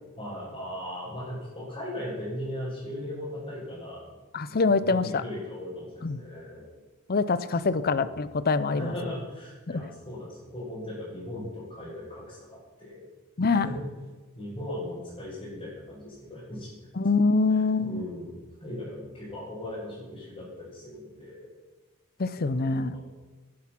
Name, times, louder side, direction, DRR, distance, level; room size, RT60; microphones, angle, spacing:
voice 1, 0.2-4.1 4.5-6.7 7.7-8.1 8.7-13.0 13.5-13.8 14.4-16.7 17.5-18.3 18.6-21.4 22.4-23.0, left 1 dB, 25° left, -10 dB, 5.3 m, -38 dB
voice 2, 4.3-5.2 6.0-6.2 7.1-8.9 9.7-9.8 13.4-13.7 17.0-18.1 22.2-23.0, left 4 dB, 45° left, 15 dB, 0.6 m, -25 dB
11.0 x 10.5 x 5.9 m, 1.2 s
head